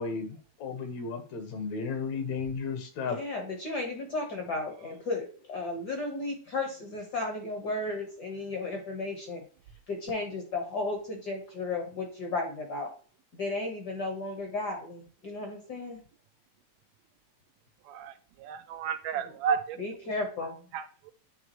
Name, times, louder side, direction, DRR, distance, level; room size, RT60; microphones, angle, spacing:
voice 1, 0.0-3.2, left 5 dB, 70° left, 6 dB, 2.4 m, -34 dB
voice 2, 3.1-9.4 9.9-12.9 13.3-16.0 19.8-20.6, left 2 dB, 50° left, 3 dB, 1.3 m, -34 dB
voice 3, 17.9-19.8 20.7-21.1, right 7 dB, 80° right, 10 dB, 1.7 m, -32 dB
9.3 x 3.5 x 3.0 m, 0.42 s
omnidirectional pair, 3.3 m